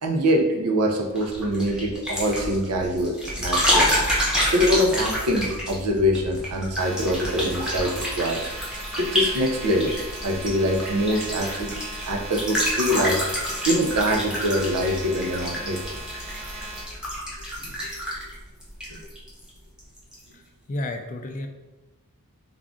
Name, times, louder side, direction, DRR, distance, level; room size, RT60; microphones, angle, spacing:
voice 1, 0.0-3.9 4.5-8.4 9.0-10.0 10.2-15.8 18.9-19.0, equal, 85° right, 2 dB, 0.6 m, -24 dB
sound 1, 1.2-19.5 19.8-20.2, equal, 5° right, 0.8 m, -28 dB
sound 2, 6.8-16.8, right 2 dB, 40° right, 0.9 m, -38 dB
voice 2, 20.3-21.5, left 1 dB, 35° left, 5 dB, 0.3 m, -32 dB
3.6 x 2.4 x 3.6 m, 1.1 s
head